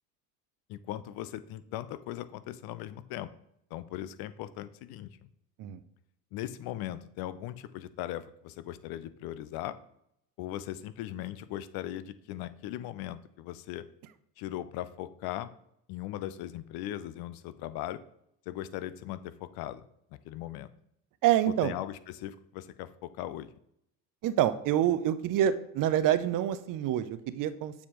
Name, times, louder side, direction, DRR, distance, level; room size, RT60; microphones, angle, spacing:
voice 1, 0.7-3.3 3.7-5.3 6.3-9.8 10.4-13.9 14.4-15.5 15.9-18.0 18.5-19.8 20.2-20.7 21.5-23.5, left 13 dB, 55° left, 14 dB, 0.7 m, -39 dB
voice 2, 21.2-21.7 24.2-27.7, right 11 dB, 45° right, 13 dB, 0.7 m, -27 dB
7.1 x 7.0 x 3.1 m, 0.74 s
hypercardioid pair, 75°, 46 cm